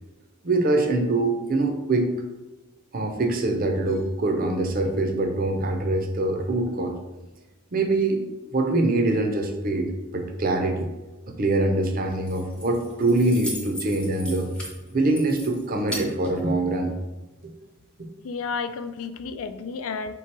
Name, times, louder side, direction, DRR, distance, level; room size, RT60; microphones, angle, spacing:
voice 1, 0.4-2.1 2.9-7.0 7.7-8.2 8.5-9.9 10.1-10.9 11.3-14.5 14.9-16.9 17.4-17.5, right 2 dB, 40° right, 4 dB, 0.5 m, -24 dB
Keys jangling, 12.0-17.1, equal, 5° left, 0.6 m, -39 dB
voice 2, 18.2-20.1, left 5 dB, 75° left, 10 dB, 0.3 m, -31 dB
3.3 x 3.1 x 4.5 m, 1.1 s
head